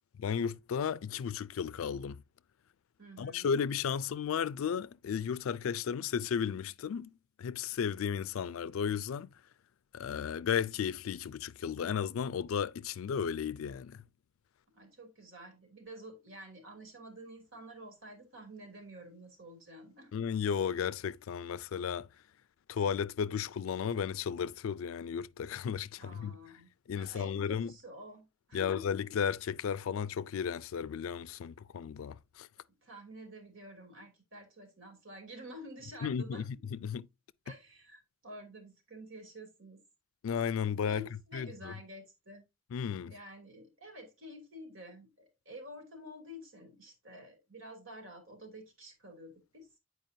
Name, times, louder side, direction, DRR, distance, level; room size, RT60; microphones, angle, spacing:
voice 1, 0.2-2.2 3.2-7.1 7.4-9.3 9.9-14.0 20.1-22.1 22.7-26.4 26.9-27.7 28.5-32.5 36.0-37.1 40.2-41.7 42.7-43.1, left 7 dB, 80° left, 0.4 m, -34 dB
voice 2, 3.0-3.5 14.7-20.1 26.0-26.7 26.9-28.9 32.8-36.5 37.4-39.8 40.9-42.4 43.0-49.7, equal, 70° right, 2.6 m, -50 dB
9.0 x 4.7 x 2.7 m
head